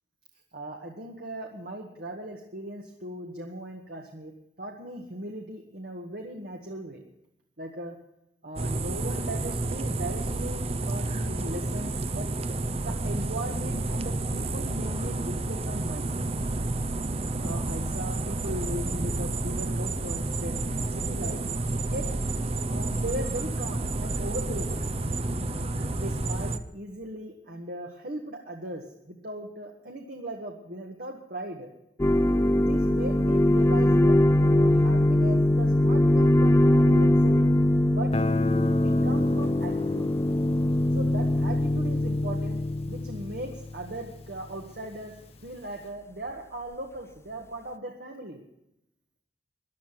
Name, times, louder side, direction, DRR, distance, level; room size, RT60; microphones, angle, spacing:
voice 1, 0.5-4.3 4.6-7.0 7.6-8.0 8.4-10.6 10.9-12.3 12.8-16.3 17.4-21.4 21.9-22.1 22.7-25.0 25.9-31.7 32.6-37.5 37.9-38.1 38.8-40.1 40.9-42.6 42.9-45.1 45.4-48.4, right 1 dB, 60° right, 1 dB, 1.7 m, -38 dB
sound 1, 8.6-26.6, right 2 dB, 35° right, 0.8 m, -30 dB
sound 2, 32.0-43.5, left 1 dB, 15° left, 0.4 m, -22 dB
Guitar, 38.1-44.8, left 3 dB, 35° left, 0.8 m, -33 dB
15.0 x 11.0 x 5.8 m, 0.83 s
head